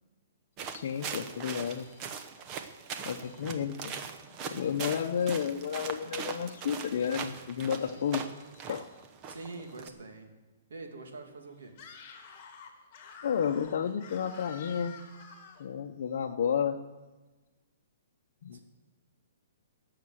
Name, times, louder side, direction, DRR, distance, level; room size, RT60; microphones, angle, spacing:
sound 1, 0.6-9.9, right 6 dB, 25° right, 0.8 m, -41 dB
voice 1, 0.7-2.2 3.0-3.9 4.4-8.3 8.7-8.9 13.2-15.0 15.6-16.8 18.4-18.6, left 7 dB, 55° left, 1 dB, 0.8 m, -32 dB
voice 2, 4.4-4.7 9.3-10.3 10.7-11.7 18.5-18.6, right 3 dB, 85° right, 3 dB, 2.6 m, -45 dB
Screaming, 11.7-15.7, left 5 dB, 30° left, 2.0 m, -49 dB
17.0 x 6.7 x 7.8 m, 1.2 s
hypercardioid pair, 165°, 0 cm